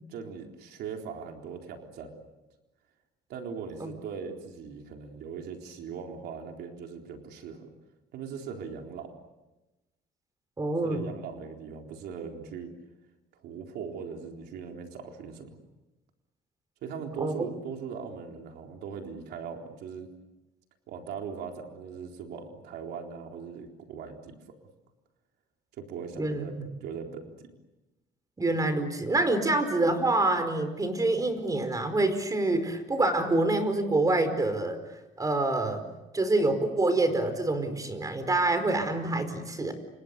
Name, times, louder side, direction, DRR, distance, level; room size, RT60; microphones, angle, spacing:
voice 1, 0.1-2.1 3.3-7.7 8.1-9.1 10.8-12.7 13.3-15.6 16.8-20.1 20.9-24.4 25.8-27.5, right 6 dB, 75° right, 3 dB, 3.9 m, -40 dB
voice 2, 10.6-11.0 17.2-17.3 26.2-26.7 28.4-34.8 35.2-35.8 36.1-39.7, right 2 dB, 20° right, 9 dB, 4.9 m, -26 dB
29.5 x 26.5 x 6.8 m, 1.0 s
cardioid pair, 110°, 17 cm